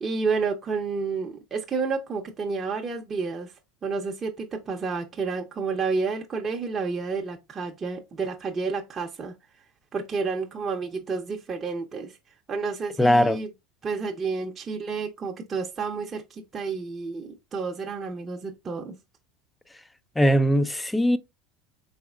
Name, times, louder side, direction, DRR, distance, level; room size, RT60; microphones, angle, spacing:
voice 1, 0.0-3.5 3.8-9.3 9.9-12.2 12.5-13.5 13.8-18.9, right 4 dB, 25° right, 0.7 m, -30 dB
voice 2, 13.0-13.4 20.2-21.2, equal, 10° left, 0.4 m, -20 dB
4.1 x 3.4 x 2.3 m
supercardioid pair, 110°, 0 cm